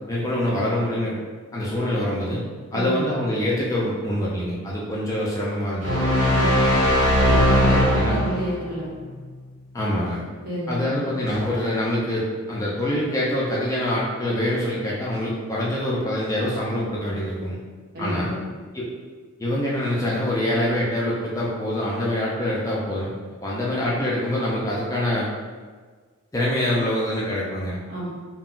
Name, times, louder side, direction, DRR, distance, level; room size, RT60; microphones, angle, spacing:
voice 1, 0.1-1.2 1.5-2.4 2.7-6.0 7.5-8.2 9.7-10.2 10.7-17.6 18.0-18.3 18.7-18.9 19.4-23.1 23.4-25.3 26.3-27.8, left 1 dB, 15° left, -6 dB, 0.4 m, -25 dB
sound 1, 5.8-8.6, equal, 75° right, 1.3 m, -19 dB
voice 2, 7.2-8.9 10.4-10.9 17.9-18.4 27.9-28.1, equal, 40° right, -7 dB, 0.9 m, -29 dB
2.3 x 2.1 x 3.6 m, 1.5 s
head